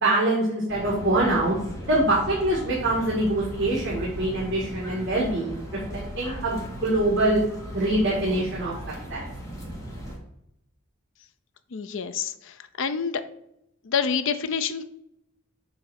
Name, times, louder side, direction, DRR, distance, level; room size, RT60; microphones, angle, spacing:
voice 1, 0.0-1.6 1.8-5.6 5.9-7.4 7.7-8.7 9.1-9.2, right 1 dB, 55° right, -6 dB, 1.9 m, -24 dB
sound 1, 0.7-10.2, equal, 15° left, 1.7 m, -37 dB
voice 2, 11.7-13.2 13.8-14.9, left 6 dB, 65° left, 11 dB, 0.5 m, -27 dB
7.0 x 3.2 x 5.8 m, 0.82 s
head